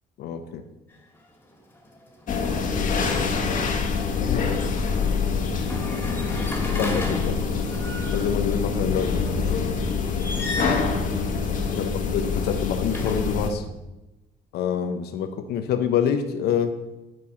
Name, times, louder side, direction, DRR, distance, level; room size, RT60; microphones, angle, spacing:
voice 1, 0.2-0.6 4.3-4.9 6.8-7.4 8.1-9.5 11.7-13.6 14.5-16.8, left 7 dB, 70° left, 7 dB, 0.8 m, -27 dB
sound 1, 0.9-1.2 1.5-3.6 5.5-8.6 10.1-10.9 12.1-13.5, left 1 dB, 10° left, 2.1 m, -35 dB
sound 2, 2.3-13.5, left 5 dB, 50° left, 1.5 m, -25 dB
9.9 x 4.7 x 5.7 m, 0.99 s
cardioid pair, 110°, 17 cm